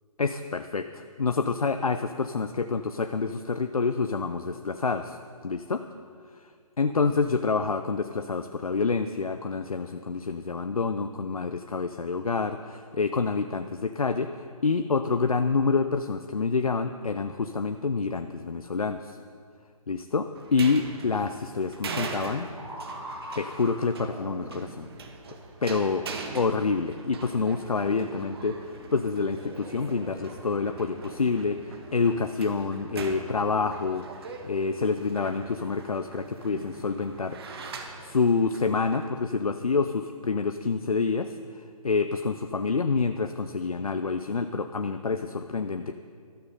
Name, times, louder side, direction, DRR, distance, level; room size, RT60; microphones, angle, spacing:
voice 1, 0.2-5.2 5.4-5.8 6.8-14.3 14.6-19.2 19.9-22.5 23.4-24.9 25.6-26.1 26.3-28.6 28.9-37.6 38.0-45.9, left 4 dB, 75° left, 9 dB, 0.7 m, -27 dB
sound 1, 20.3-39.1, right 4 dB, 45° right, 1.5 m, -42 dB
sound 2, 22.4-25.1 28.0-31.9 32.5-32.6, right 1 dB, 10° right, 2.3 m, -44 dB
14.0 x 13.0 x 5.5 m, 2.2 s
figure-of-eight pair, 135°, 19 cm